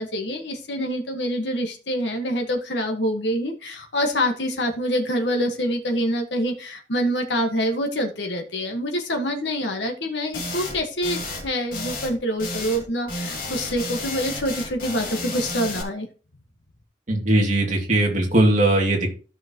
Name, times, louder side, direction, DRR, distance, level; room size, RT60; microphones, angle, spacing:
voice 1, 0.0-16.1, equal, 75° left, 3 dB, 1.6 m, -26 dB
sound 1, 10.3-10.8 11.0-11.4 11.7-12.1 12.4-12.8 13.1-15.8, left 2 dB, 55° left, 2.9 m, -32 dB
voice 2, 17.1-19.1, right 1 dB, 45° right, 0 dB, 2.5 m, -19 dB
14.0 x 5.8 x 3.0 m, 0.36 s
head